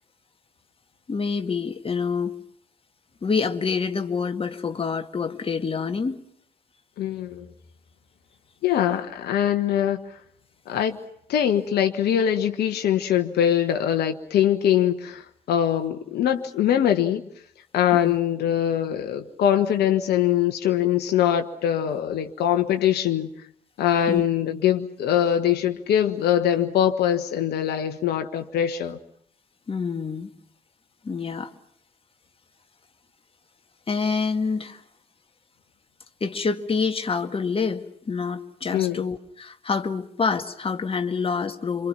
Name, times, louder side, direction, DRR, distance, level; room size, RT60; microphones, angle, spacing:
voice 1, 1.1-2.4 3.2-6.2 17.9-18.2 24.1-24.2 29.7-30.3 31.0-31.5 33.9-34.8 36.2-41.9, left 5 dB, 25° left, 1.9 m, -27 dB
voice 2, 7.0-7.5 8.6-10.0 10.7-11.0 11.3-17.2 17.7-23.3 23.8-29.0 38.7-39.0, left 10 dB, 50° left, 1.5 m, -22 dB
27.5 x 26.5 x 5.9 m
figure-of-eight pair, 50°, 21 cm